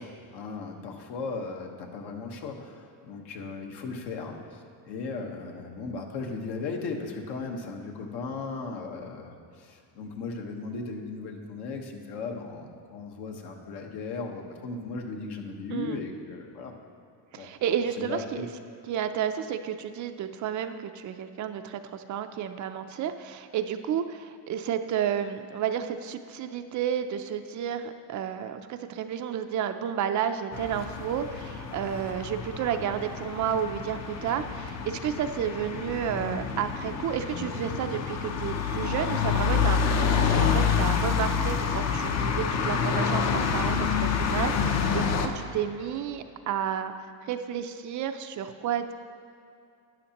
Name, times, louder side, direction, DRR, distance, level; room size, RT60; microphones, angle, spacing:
voice 1, 0.0-16.7 17.4-17.5 18.0-18.4, left 4 dB, 65° left, 2 dB, 1.3 m, -37 dB
voice 2, 15.7-16.0 17.3-18.5 18.9-46.9 47.3-48.9, right 9 dB, 45° right, 8 dB, 0.5 m, -31 dB
sound 1, 30.5-45.3, left 6 dB, 40° left, 0.7 m, -28 dB
12.5 x 9.9 x 2.9 m, 2.4 s
cardioid pair, 135°, 43 cm